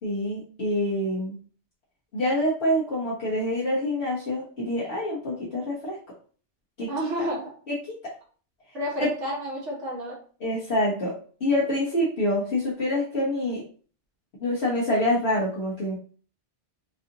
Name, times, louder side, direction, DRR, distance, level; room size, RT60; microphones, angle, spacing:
voice 1, 0.0-1.4 2.1-6.0 6.8-7.1 7.7-7.8 8.0-8.1 9.0-9.1 10.4-11.1 11.4-13.6 14.4-16.0, left 1 dB, 65° left, -7 dB, 1.4 m, -26 dB
voice 2, 6.9-7.5 8.7-10.2, equal, 80° right, -4 dB, 1.9 m, -30 dB
4.8 x 2.5 x 2.8 m, 0.41 s
omnidirectional pair, 1.2 m